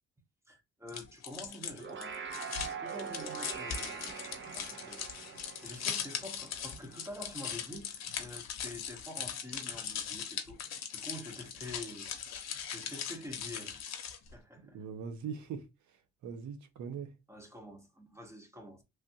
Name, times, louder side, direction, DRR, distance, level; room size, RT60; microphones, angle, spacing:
voice 1, 0.5-2.2 2.5-4.2 4.5-13.9 14.3-14.8 17.3-18.8, left 1 dB, 10° right, 0.8 m, -47 dB
sound 1, 0.9-14.3, left 8 dB, 60° left, 0.8 m, -40 dB
sound 2, 1.6-7.2, right 6 dB, 40° right, 0.6 m, -43 dB
voice 2, 14.6-15.7 16.2-17.1, right 6 dB, 70° right, 0.8 m, -41 dB
3.3 x 2.4 x 2.8 m
cardioid pair, 90°, 30 cm